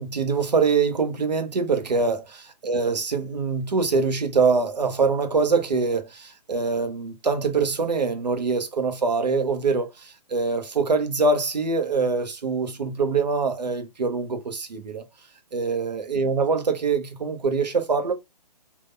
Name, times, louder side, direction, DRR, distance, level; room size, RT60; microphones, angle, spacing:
voice 1, 0.0-2.2 2.6-15.0 15.5-18.1, right 4 dB, 85° right, 1.1 m, -24 dB
3.8 x 2.6 x 2.6 m
hypercardioid pair, 140°, 21 cm